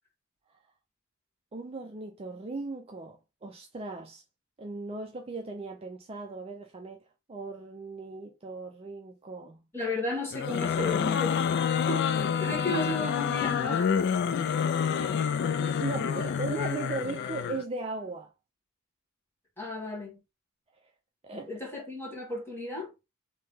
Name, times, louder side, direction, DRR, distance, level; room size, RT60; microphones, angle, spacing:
voice 1, 1.5-4.2 4.6-7.0 7.3-9.7 15.4-18.3 21.2-21.5, right 3 dB, 30° right, 0.4 m, -38 dB
voice 2, 9.7-11.5 11.9-13.9 14.3-14.5 14.9-15.3 19.6-20.2 21.3-22.9, left 2 dB, 10° left, 1.4 m, -34 dB
sound 1, 10.3-17.6, left 7 dB, 55° left, 0.3 m, -28 dB
3.2 x 2.8 x 3.5 m
head